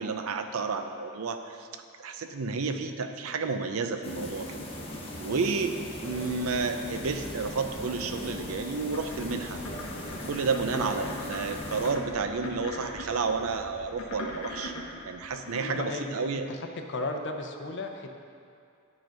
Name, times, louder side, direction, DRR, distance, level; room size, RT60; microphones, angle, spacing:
voice 1, 0.0-4.6 5.2-9.6 10.3-14.7 15.0-16.5, right 4 dB, 80° right, 7 dB, 0.5 m, -31 dB
sound 1, 4.0-11.9, left 1 dB, 30° left, 1.0 m, -39 dB
sound 2, 5.1-15.7, equal, 40° right, 1.1 m, -50 dB
sound 3, 7.7-15.8, left 1 dB, 90° left, 1.1 m, -41 dB
voice 2, 10.7-11.2 15.7-16.4 16.9-18.1, left 2 dB, 55° left, 4 dB, 0.6 m, -36 dB
10.5 x 3.9 x 5.1 m, 2.4 s
head